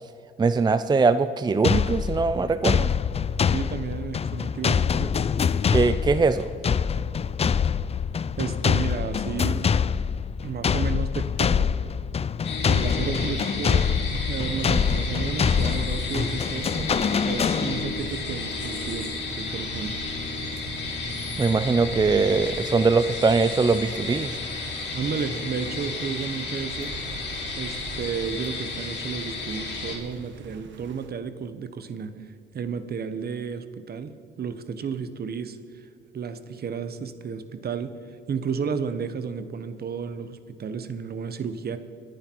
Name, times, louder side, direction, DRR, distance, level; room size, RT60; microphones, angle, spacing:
voice 1, 0.4-2.9 5.7-6.5 21.4-24.3, right 4 dB, 20° right, 12 dB, 0.5 m, -21 dB
sound 1, 1.6-18.1, left 7 dB, 30° left, 0.5 m, -25 dB
voice 2, 3.5-5.2 8.4-9.7 10.4-11.7 12.7-13.9 14.3-16.7 17.2-20.0 24.9-26.9 27.6-35.9 36.1-38.0 38.3-41.8, right 6 dB, 50° right, 11 dB, 1.2 m, -32 dB
sound 2, 12.4-30.0, left 3 dB, 60° left, 4.3 m, -33 dB
sound 3, 13.9-31.1, right 4 dB, 70° right, 1.6 m, -41 dB
26.0 x 9.9 x 4.6 m, 2.4 s
cardioid pair, 90°, 20 cm